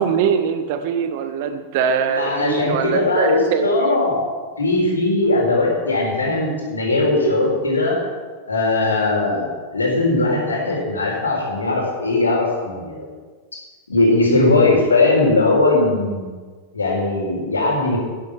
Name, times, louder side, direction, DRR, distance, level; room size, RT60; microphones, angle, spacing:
voice 1, 0.0-4.1, right 7 dB, 50° right, 9 dB, 1.2 m, -22 dB
voice 2, 2.1-4.2 4.6-8.0 8.5-13.1 13.9-16.3 16.7-18.0, left 2 dB, 75° left, -2 dB, 4.2 m, -19 dB
11.0 x 10.5 x 6.0 m, 1.4 s
figure-of-eight pair, 90°, 0 cm